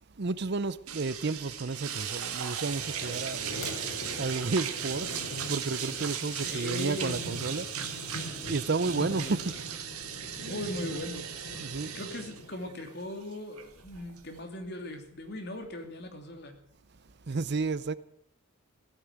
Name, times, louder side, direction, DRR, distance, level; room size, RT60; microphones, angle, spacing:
voice 1, 0.2-3.7 4.2-7.7 8.5-9.5 10.4-10.9 11.6-11.9 17.3-18.0, right 3 dB, 50° right, 0.6 m, -32 dB
sound 1, 0.9-14.4, right 9 dB, 85° right, 1.9 m, -37 dB
sound 2, 2.7-12.5, left 1 dB, 70° left, 6.0 m, -42 dB
voice 2, 6.3-7.2 8.9-9.3 10.5-11.2 11.9-16.5, left 1 dB, 50° left, 2.8 m, -39 dB
16.0 x 9.3 x 9.3 m
head